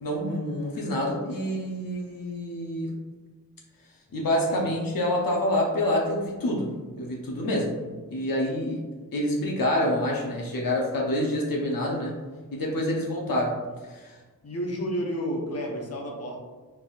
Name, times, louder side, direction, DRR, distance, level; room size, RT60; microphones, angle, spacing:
voice 1, 0.0-2.9 4.1-6.7 7.0-7.7 8.1-8.8 9.1-12.1 12.5-13.5 13.9-14.2, left 1 dB, 80° left, -1 dB, 0.7 m, -27 dB
voice 2, 14.4-16.4, equal, 45° left, 0 dB, 0.8 m, -31 dB
4.0 x 3.5 x 2.4 m, 1.3 s
wide cardioid pair, 85°, 34 cm